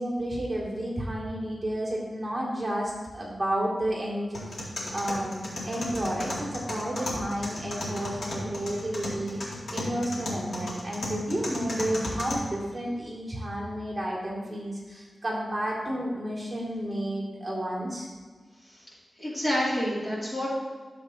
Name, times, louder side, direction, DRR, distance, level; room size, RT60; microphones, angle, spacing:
voice 1, 0.0-5.4 5.7-18.1, right 1 dB, 20° right, -5 dB, 2.3 m, -31 dB
sound 1, 4.3-12.3, left 1 dB, 85° left, 2.2 m, -35 dB
voice 2, 19.2-20.5, equal, 30° left, -6 dB, 2.4 m, -28 dB
12.5 x 7.2 x 2.8 m, 1.4 s
wide cardioid pair, 140°, 0 cm